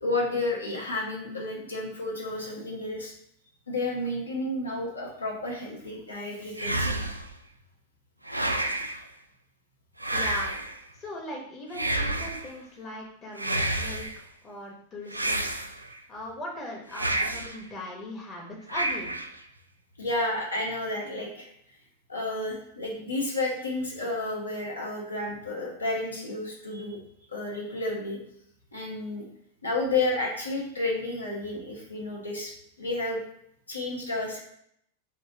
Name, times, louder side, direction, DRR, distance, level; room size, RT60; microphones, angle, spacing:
voice 1, 0.0-3.1 3.7-7.0 20.0-21.5 22.1-27.0 27.3-28.2 28.7-29.2 29.6-33.2 33.7-34.4, left 2 dB, 80° left, -3 dB, 1.1 m, -31 dB
sound 1, 6.6-7.4 8.3-9.0 10.0-10.8 11.7-12.5 13.4-14.2 15.1-16.0 16.9-17.6 18.7-19.4, right 1 dB, 85° right, 0.3 m, -29 dB
voice 2, 10.1-10.5 10.9-15.5 16.1-19.2, left 1 dB, 25° left, -2 dB, 0.9 m, -39 dB
3.4 x 2.6 x 4.6 m, 0.71 s
figure-of-eight pair, 90°, 0 cm